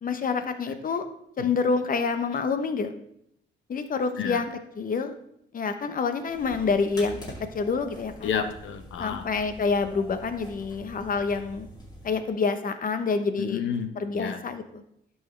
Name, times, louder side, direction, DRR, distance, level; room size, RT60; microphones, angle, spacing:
voice 1, 0.0-1.0 1.4-2.9 3.7-4.5 4.8-5.2 5.5-7.2 7.5-8.3 9.0-11.7 12.0-13.6 14.0-14.8, left 4 dB, 45° left, 9 dB, 0.9 m, -27 dB
sound 1, 6.3-12.2, equal, 20° left, 3.2 m, -45 dB
voice 2, 8.2-9.2 13.4-14.4, left 7 dB, 75° left, 8 dB, 0.9 m, -31 dB
11.0 x 6.4 x 3.2 m, 0.75 s
cardioid pair, 90°, 20 cm